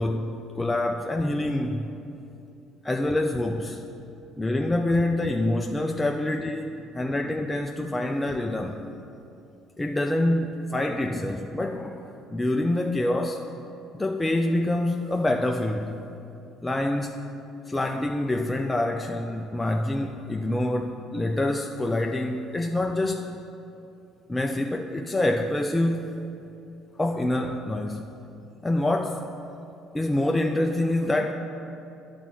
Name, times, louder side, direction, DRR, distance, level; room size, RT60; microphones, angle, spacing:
voice 1, 0.0-1.9 2.8-3.8 4.4-8.8 9.8-13.5 13.9-16.0 16.6-17.2 17.7-23.3 24.3-26.1 27.0-28.1 28.6-29.3 29.9-31.3, left 1 dB, 15° left, 2 dB, 0.4 m, -26 dB
9.9 x 4.1 x 7.6 m, 2.7 s
supercardioid pair, 90°, 0 cm